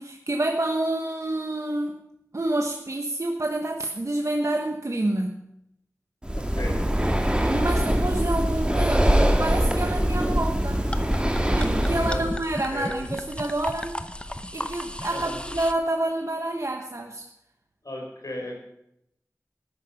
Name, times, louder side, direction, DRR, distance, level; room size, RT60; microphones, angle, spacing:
voice 1, 0.0-2.0 2.3-5.5 7.2-10.9 11.6-14.0 14.5-17.2, right 1 dB, 55° right, 2 dB, 1.2 m, -28 dB
Breathing, 6.2-12.4, equal, 15° right, 1.7 m, -23 dB
voice 2, 6.4-6.9 12.0-12.2 12.7-13.1 15.1-15.4 17.8-18.6, left 1 dB, 75° left, 1 dB, 4.0 m, -35 dB
sound 1, 10.7-15.7, left 1 dB, 15° left, 0.8 m, -35 dB
13.5 x 11.0 x 5.8 m, 0.80 s
wide cardioid pair, 50°, 6 cm